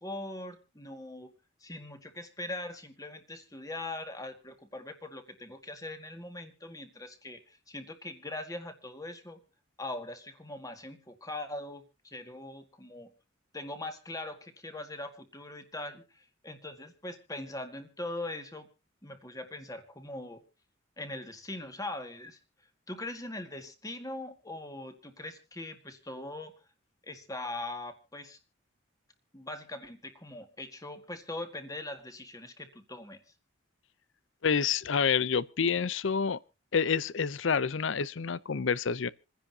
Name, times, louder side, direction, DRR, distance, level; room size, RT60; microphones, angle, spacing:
voice 1, 0.0-1.3 1.6-9.4 9.8-13.1 13.5-18.7 19.0-20.4 21.0-22.4 22.9-26.5 27.0-28.4 29.3-33.2, left 2 dB, 15° left, 1.9 m, -41 dB
voice 2, 34.4-36.4 36.7-39.1, left 6 dB, 65° left, 0.6 m, -28 dB
28.0 x 10.0 x 2.8 m
head